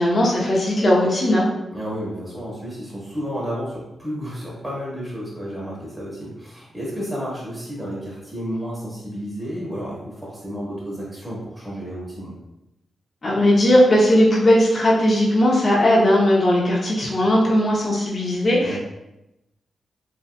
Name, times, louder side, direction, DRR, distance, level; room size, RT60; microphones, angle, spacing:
voice 1, 0.0-1.5 13.2-18.8, left 1 dB, 40° left, -4 dB, 0.8 m, -18 dB
voice 2, 1.7-12.3 18.6-18.8, equal, 5° right, -6 dB, 1.2 m, -31 dB
2.9 x 2.8 x 2.2 m, 0.92 s
cardioid pair, 75°, 0 cm